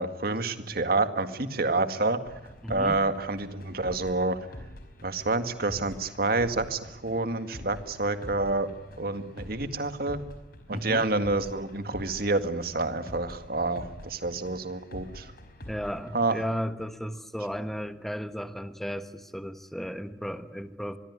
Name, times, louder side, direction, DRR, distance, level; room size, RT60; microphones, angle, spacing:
voice 1, 0.0-2.4 2.7-4.4 5.0-8.7 9.0-10.2 10.7-15.3 16.1-16.4, right 2 dB, 55° right, 9 dB, 2.0 m, -28 dB
sound 1, 2.2-16.1, equal, 55° left, 4.8 m, -46 dB
voice 2, 2.6-3.0 10.7-11.0 15.7-21.0, equal, ahead, 9 dB, 1.2 m, -34 dB
25.0 x 22.5 x 9.7 m, 0.98 s
head